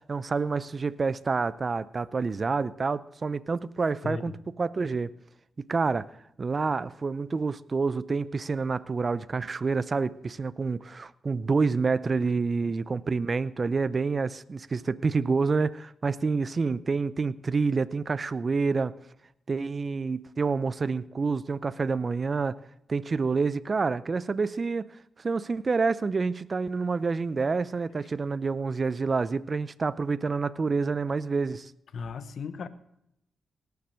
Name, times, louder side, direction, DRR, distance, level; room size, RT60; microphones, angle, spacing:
voice 1, 0.0-4.3 4.6-5.1 5.7-6.1 6.4-18.9 19.5-22.6 22.9-24.9 25.2-31.7, right 4 dB, 45° right, 17 dB, 0.5 m, -28 dB
voice 2, 4.0-4.4 12.6-12.8 31.9-32.7, left 5 dB, 70° left, 13 dB, 1.0 m, -36 dB
18.0 x 7.1 x 6.3 m, 0.77 s
supercardioid pair, 45°, 0 cm